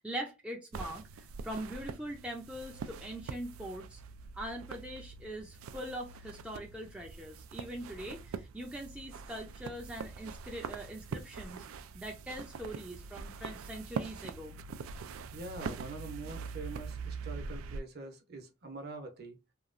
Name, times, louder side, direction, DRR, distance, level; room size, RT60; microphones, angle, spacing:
voice 1, 0.0-4.0 4.3-11.7 11.9-14.5, right 1 dB, 5° right, 0.4 m, -42 dB
sound 1, 0.7-17.8, right 5 dB, 90° right, 0.3 m, -43 dB
voice 2, 15.3-19.4, right 2 dB, 50° right, 0.8 m, -44 dB
2.9 x 2.3 x 2.4 m
head